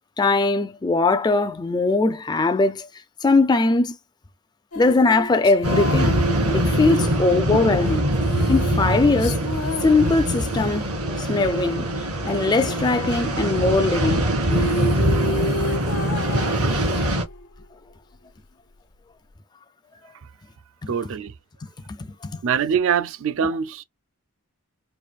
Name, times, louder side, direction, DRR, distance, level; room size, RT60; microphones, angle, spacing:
voice 1, 0.2-2.9 3.2-4.0 4.8-6.1 6.5-8.1 8.5-9.5 9.8-10.9 11.2-11.9 12.2-14.2 20.8-20.9 21.9-22.4, left 3 dB, 20° left, 0.4 m, -20 dB
sound 1, 4.7-10.9 14.1-14.2 14.4-17.6, left 1 dB, 85° left, 1.1 m, -31 dB
sound 2, 5.6-17.2, right 1 dB, 80° right, 2.2 m, -23 dB
voice 2, 20.9-21.3 22.4-23.8, right 7 dB, 60° right, 0.4 m, -23 dB
4.7 x 2.5 x 2.4 m
head